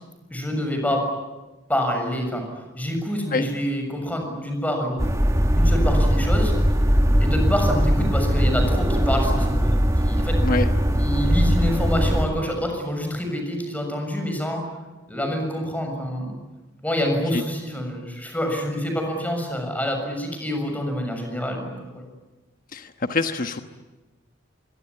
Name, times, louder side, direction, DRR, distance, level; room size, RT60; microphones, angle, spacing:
voice 1, 0.3-1.0 1.7-2.4 2.7-5.0 5.6-6.5 7.2-10.4 10.9-14.6 15.1-16.4 16.8-22.0, equal, 10° left, 4 dB, 6.8 m, -27 dB
sound 1, 5.0-12.3, equal, 15° right, 1.9 m, -20 dB
voice 2, 22.7-23.6, left 3 dB, 45° left, 7 dB, 1.3 m, -25 dB
25.5 x 22.5 x 9.9 m, 1.1 s
head